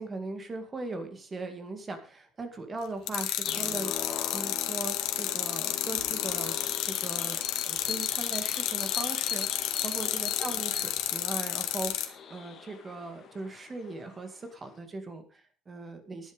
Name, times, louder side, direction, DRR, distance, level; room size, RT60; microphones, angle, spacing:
voice 1, 0.0-6.6 6.8-7.4 7.7-16.3, right 3 dB, 20° right, 7 dB, 2.1 m, -39 dB
sound 1, 3.1-12.1, left 13 dB, 75° left, 1.8 m, -31 dB
sound 2, 3.4-14.6, left 7 dB, 35° left, 2.0 m, -40 dB
11.0 x 11.0 x 5.0 m, 0.40 s
cardioid pair, 160°, 0 cm